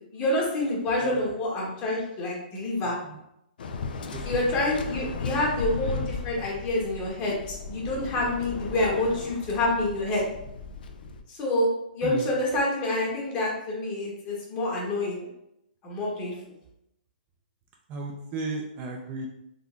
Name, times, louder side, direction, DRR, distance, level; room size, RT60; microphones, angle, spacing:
voice 1, 0.0-3.0 4.2-10.2 11.3-11.7 11.9-15.3 15.8-16.3, left 1 dB, 25° left, -3 dB, 1.1 m, -27 dB
voice 2, 1.0-1.4 2.8-3.2 4.0-4.2 4.6-5.5 12.0-12.3 17.9-19.3, right 3 dB, 30° right, 0 dB, 0.4 m, -37 dB
Waves surf, 3.6-11.2, left 4 dB, 70° left, 0.4 m, -36 dB
3.8 x 2.8 x 2.4 m, 0.80 s
hypercardioid pair, 140°, 5 cm